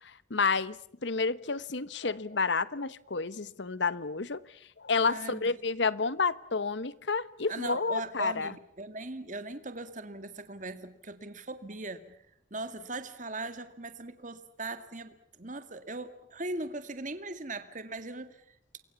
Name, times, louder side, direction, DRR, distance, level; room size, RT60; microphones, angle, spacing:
voice 1, 0.0-4.4 4.8-8.5, left 4 dB, 65° left, 1.0 m, -30 dB
voice 2, 5.1-5.5 7.5-12.2 12.5-18.8, right 2 dB, 40° right, 2.0 m, -39 dB
29.0 x 22.5 x 7.1 m
head